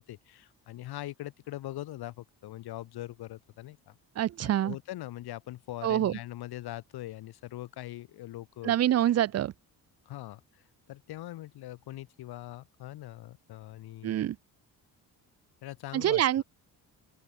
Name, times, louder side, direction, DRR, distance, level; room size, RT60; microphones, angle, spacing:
voice 1, 0.0-4.0 4.4-8.8 10.0-10.6 10.9-14.1 15.6-16.4, left 15 dB, 85° left, 4.9 m, -42 dB
voice 2, 4.2-4.8 5.8-6.2 8.6-9.5 14.0-14.4 15.9-16.4, right 12 dB, 40° right, 0.7 m, -26 dB
open air
cardioid pair, 155°, 37 cm